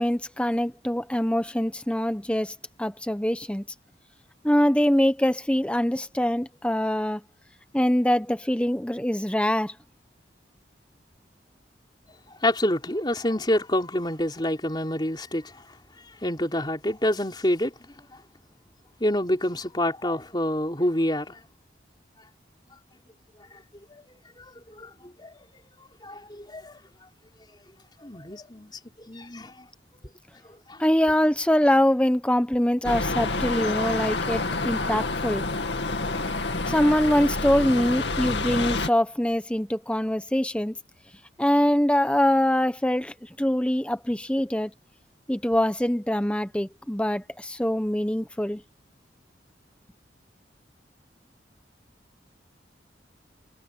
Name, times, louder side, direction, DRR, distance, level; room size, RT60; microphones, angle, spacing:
voice 1, 0.0-3.6 4.4-7.2 7.7-9.7 30.8-35.5 36.6-40.8 41.4-44.7 45.3-48.6, equal, 5° left, 0.9 m, -24 dB
voice 2, 12.4-15.6 16.1-18.1 19.0-21.4 23.9-24.1 24.4-24.9 25.2-25.6 26.0-26.8 28.0-29.7 30.4-30.8, left 1 dB, 25° left, 3.8 m, -28 dB
sound 1, 32.8-38.9, left 3 dB, 80° left, 2.4 m, -28 dB
head